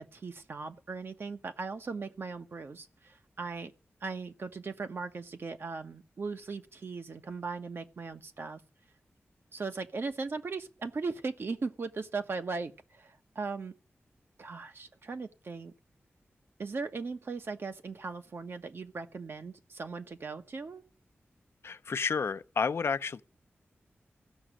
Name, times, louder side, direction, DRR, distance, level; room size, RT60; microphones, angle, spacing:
voice 1, 0.0-3.7 4.0-8.6 9.5-13.7 14.4-15.7 16.6-20.8, right 4 dB, 60° right, 1.1 m, -38 dB
voice 2, 21.6-23.2, left 5 dB, 70° left, 0.6 m, -31 dB
15.0 x 6.2 x 8.9 m
wide cardioid pair, 125°, 4 cm